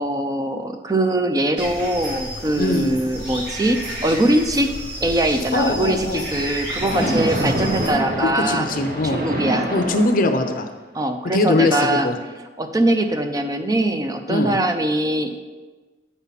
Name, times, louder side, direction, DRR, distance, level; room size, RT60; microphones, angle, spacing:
voice 1, 0.0-4.7 5.0-8.7 9.1-9.7 10.9-12.1 12.6-15.3, right 1 dB, 20° right, 6 dB, 0.5 m, -22 dB
sound 1, 1.6-7.9, right 1 dB, 70° right, 2.1 m, -32 dB
voice 2, 2.5-2.9 5.5-6.3 6.9-7.2 8.2-9.2 9.7-10.7 11.3-12.1 14.3-14.6, left 2 dB, 50° left, 7 dB, 0.6 m, -21 dB
Splash splatter, 6.7-10.7, right 1 dB, 55° right, 1.0 m, -26 dB
8.2 x 5.6 x 4.1 m, 1.3 s
head